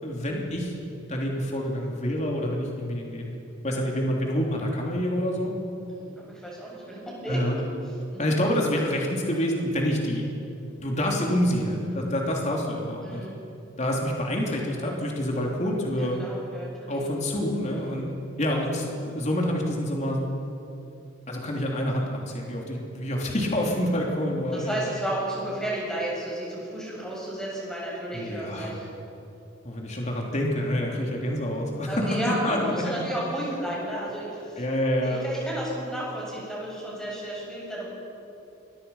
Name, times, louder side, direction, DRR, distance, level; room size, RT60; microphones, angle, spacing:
voice 1, 0.0-0.7 1.1-3.3 3.6-5.5 7.3-7.6 8.2-10.3 10.8-13.2 13.8-16.2 16.9-18.1 18.4-20.2 21.3-24.8 28.1-28.7 29.6-33.1 34.6-35.2, equal, 35° left, -1 dB, 3.2 m, -27 dB
voice 2, 5.9-7.6 8.1-8.4 11.8-12.0 13.0-13.4 16.0-17.0 17.7-18.0 24.5-28.9 30.9-31.2 31.9-34.6 35.0-37.9, right 1 dB, 5° left, -5 dB, 7.8 m, -33 dB
27.0 x 22.5 x 5.7 m, 2.7 s
head